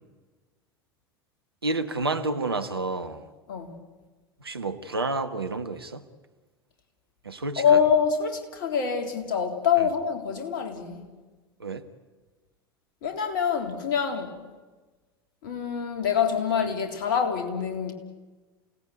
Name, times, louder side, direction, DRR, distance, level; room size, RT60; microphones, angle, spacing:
voice 1, 1.6-3.3 4.4-6.0 7.2-7.8 9.8-9.9 11.6-11.8, right 3 dB, 85° right, 1.5 m, -30 dB
voice 2, 7.6-11.1 13.0-14.4 15.4-17.9, left 7 dB, 60° left, 3.6 m, -25 dB
29.0 x 18.0 x 9.4 m
figure-of-eight pair, 75°, 12 cm